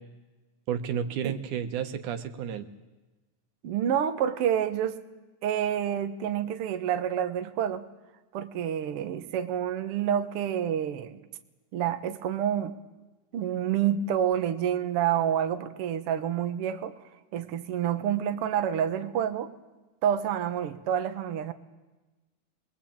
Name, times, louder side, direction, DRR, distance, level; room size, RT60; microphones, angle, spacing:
voice 1, 0.7-2.7, right 8 dB, 85° right, 7 dB, 2.8 m, -31 dB
voice 2, 3.6-5.0 5.4-7.8 8.3-11.2 11.7-12.7 13.3-19.5 20.0-21.5, right 9 dB, 60° right, 8 dB, 1.8 m, -28 dB
25.5 x 22.0 x 8.8 m, 1.2 s
omnidirectional pair, 3.5 m